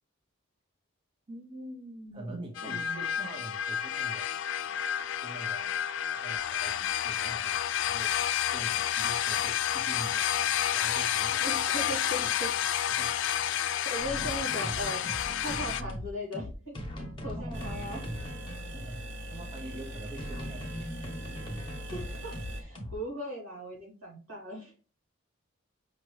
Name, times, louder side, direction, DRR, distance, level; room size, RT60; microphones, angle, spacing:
voice 1, 1.3-3.3 11.4-12.5 13.9-15.0 15.4-16.8 17.2-18.0 21.9-24.8, equal, 80° right, 0 dB, 2.6 m, -39 dB
voice 2, 2.1-4.9 5.2-10.4 10.7-11.6 12.2-12.4 12.9-13.7 17.4-17.9 18.7-20.9 22.9-23.0, right 1 dB, 25° right, 1 dB, 0.6 m, -45 dB
sound 1, 2.5-15.8, left 10 dB, 60° left, 0.3 m, -30 dB
sound 2, 14.0-22.9, equal, 25° left, 1.0 m, -40 dB
sound 3, 17.5-22.6, equal, 55° right, 0.8 m, -41 dB
6.0 x 2.9 x 3.1 m, 0.34 s
head